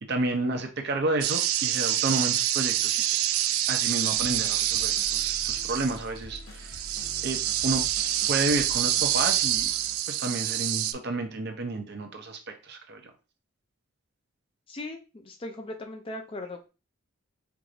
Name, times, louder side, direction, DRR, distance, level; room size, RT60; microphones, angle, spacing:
voice 1, 0.0-3.3 3.7-6.8 7.2-7.8 8.3-9.7 10.1-13.1, right 2 dB, 50° right, 5 dB, 0.7 m, -31 dB
sound 1, 1.2-6.0 6.6-10.9, right 12 dB, 80° right, 0.3 m, -26 dB
sound 2, 4.1-10.0, left 1 dB, 70° left, 0.7 m, -45 dB
voice 2, 14.7-16.7, left 2 dB, 25° left, 5 dB, 0.4 m, -38 dB
4.6 x 2.6 x 2.5 m, 0.31 s
head